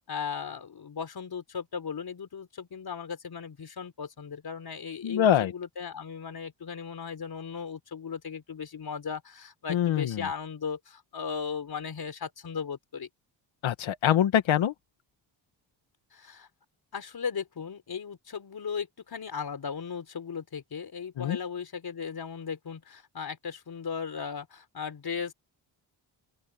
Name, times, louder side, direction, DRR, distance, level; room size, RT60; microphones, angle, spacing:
voice 1, 0.1-13.1 16.1-16.5 16.9-25.3, left 6 dB, 50° left, 4.3 m, -37 dB
voice 2, 5.0-5.5 9.7-10.3 13.6-14.7 21.2-21.4, left 10 dB, 75° left, 2.1 m, -24 dB
open air
cardioid pair, 75°, 47 cm